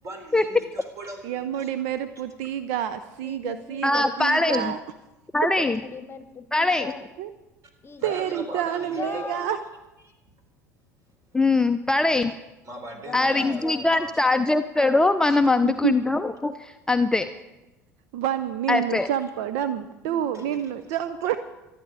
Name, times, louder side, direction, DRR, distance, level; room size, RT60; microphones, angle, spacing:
voice 1, 0.0-1.7 8.0-9.4 10.0-10.1 12.6-14.2 15.3-15.4 18.7-19.2 20.3-20.6, right 1 dB, 35° right, 5 dB, 3.9 m, -40 dB
voice 2, 1.2-4.8 7.2-7.3 8.0-9.6 15.6-15.9 18.1-21.4, right 10 dB, 60° right, 12 dB, 0.6 m, -28 dB
voice 3, 3.2-4.1 5.6-7.0 7.8-9.6 12.9-13.8 20.1-20.3, left 6 dB, 25° left, 10 dB, 1.1 m, -39 dB
voice 4, 3.8-4.7 5.3-5.8 6.5-6.9 11.3-12.3 13.1-17.3 18.7-19.1, left 2 dB, 10° left, 9 dB, 0.6 m, -22 dB
25.5 x 9.7 x 4.9 m, 1.0 s
figure-of-eight pair, 65°, 9 cm